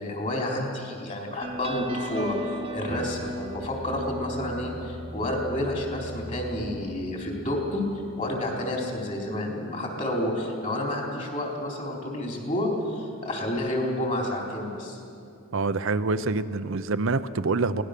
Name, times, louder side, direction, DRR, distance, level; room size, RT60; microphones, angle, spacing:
voice 1, 0.0-7.8 8.2-15.0, left 1 dB, 35° left, 0 dB, 4.1 m, -30 dB
sound 1, 1.4-8.6, equal, 25° right, 1.2 m, -37 dB
voice 2, 15.5-17.8, right 3 dB, 65° right, 11 dB, 0.7 m, -26 dB
24.0 x 18.0 x 6.8 m, 2.5 s
head